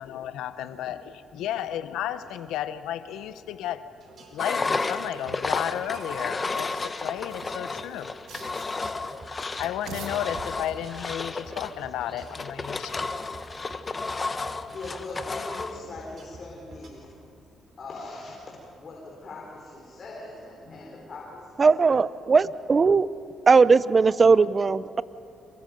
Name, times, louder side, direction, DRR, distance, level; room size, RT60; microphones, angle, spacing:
voice 1, 0.0-3.9 4.3-8.1 9.6-12.9, left 11 dB, 90° left, 13 dB, 0.8 m, -33 dB
sound 1, 3.9-16.9, right 2 dB, 55° right, 4.7 m, -49 dB
Engine, 4.4-15.8, left 3 dB, 30° left, 1.1 m, -32 dB
sound 2, 5.2-6.3 7.1-9.0 9.6-11.0, right 5 dB, 80° right, 2.1 m, -45 dB
voice 2, 14.7-17.1 17.8-22.0, left 2 dB, 45° left, -2 dB, 4.4 m, -41 dB
voice 3, 21.6-23.1 23.5-25.0, right 4 dB, 35° right, 17 dB, 0.6 m, -19 dB
27.5 x 23.0 x 5.3 m, 2.5 s
cardioid pair, 90°, 0 cm